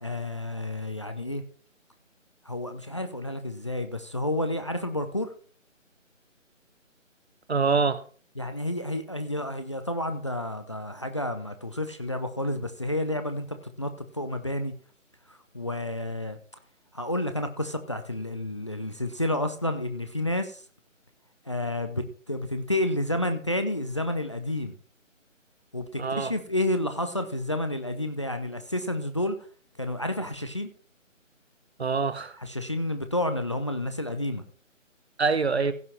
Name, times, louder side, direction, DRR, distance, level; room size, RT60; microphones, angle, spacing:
voice 1, 0.0-1.4 2.4-5.3 8.4-14.7 15.3-16.4 16.9-20.6 21.5-24.8 25.7-29.4 29.8-30.7 32.4-34.4, left 1 dB, 25° left, 0.6 m, -30 dB
voice 2, 7.5-8.0 26.0-26.3 31.8-32.4 35.2-35.7, right 4 dB, 55° right, 1.2 m, -25 dB
16.0 x 5.6 x 5.9 m
figure-of-eight pair, 155°, 39 cm